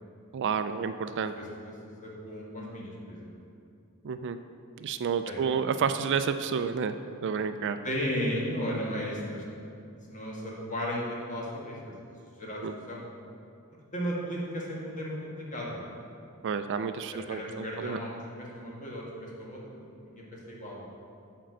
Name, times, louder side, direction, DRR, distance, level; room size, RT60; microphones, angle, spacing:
voice 1, 0.3-1.3 4.0-4.4 4.8-6.9 7.2-7.8 12.6-12.7 16.4-18.0, right 6 dB, 55° right, 10 dB, 0.4 m, -30 dB
voice 2, 1.4-1.7 2.0-3.3 5.3-5.4 7.8-9.4 10.1-11.9 12.4-12.6 12.9-13.0 13.9-16.2 17.1-20.9, equal, 35° left, -3 dB, 1.7 m, -35 dB
8.9 x 4.4 x 6.3 m, 2.6 s
head